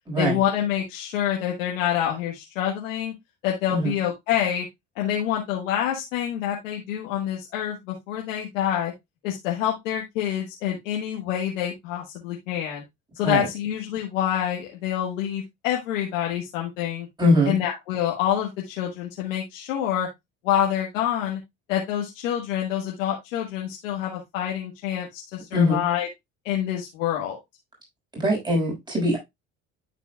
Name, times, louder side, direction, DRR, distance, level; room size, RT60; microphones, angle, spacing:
voice 1, 0.2-3.1 3.4-4.7 5.0-8.9 9.2-12.8 13.1-17.1 17.4-20.1 20.4-21.4 21.7-26.1 26.4-27.4, left 10 dB, 90° left, 1.5 m, -27 dB
voice 2, 17.2-17.5 25.5-25.8 28.1-29.2, left 1 dB, 10° right, 5.7 m, -21 dB
12.5 x 4.3 x 2.3 m
hypercardioid pair, 65°, 37 cm